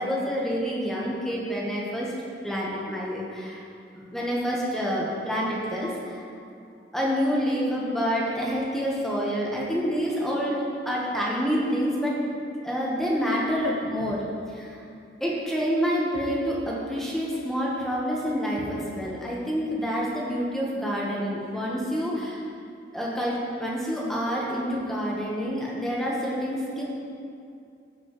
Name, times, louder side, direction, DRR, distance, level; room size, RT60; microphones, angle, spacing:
voice 1, 0.0-3.6 3.9-6.2 6.9-12.2 12.6-14.2 14.5-14.8 15.2-22.4 22.9-26.8, equal, ahead, -5 dB, 1.2 m, -28 dB
15.5 x 5.3 x 3.2 m, 2.5 s
head